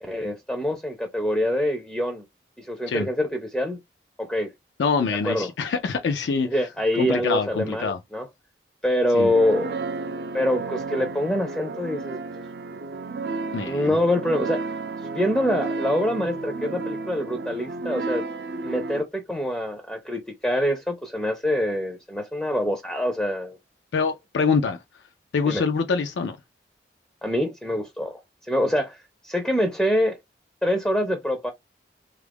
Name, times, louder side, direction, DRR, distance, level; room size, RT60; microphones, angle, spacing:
voice 1, 0.0-2.2 2.6-3.8 4.2-4.5 5.2-5.5 6.5-8.3 8.8-9.8 10.3-12.2 13.6-14.6 15.1-18.2 18.6-23.6 25.5-25.6 27.2-30.2 30.6-31.5, left 1 dB, 5° left, 0.4 m, -25 dB
voice 2, 4.8-6.7 6.9-8.0 9.1-9.3 13.5-13.9 23.9-24.8 25.3-26.4, left 5 dB, 90° left, 0.4 m, -25 dB
sound 1, 9.2-19.0, right 3 dB, 60° right, 0.4 m, -32 dB
3.4 x 2.4 x 3.3 m
head